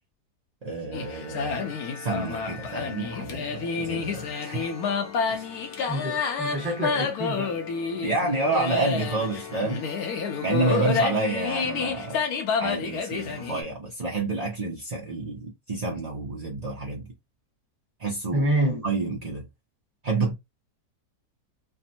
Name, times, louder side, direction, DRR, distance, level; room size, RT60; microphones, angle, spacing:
voice 1, 0.6-4.7 5.3-5.6 8.0-9.8 10.4-12.3 12.6-17.1 18.0-18.5 18.8-19.5 20.0-20.3, right 3 dB, 45° right, 0.5 m, -29 dB
sound 1, 0.9-13.6, left 5 dB, 75° left, 1.1 m, -29 dB
voice 2, 5.9-7.5 10.9-11.0 18.3-18.8, right 1 dB, 10° right, 0.9 m, -27 dB
3.4 x 2.1 x 2.7 m
omnidirectional pair, 1.7 m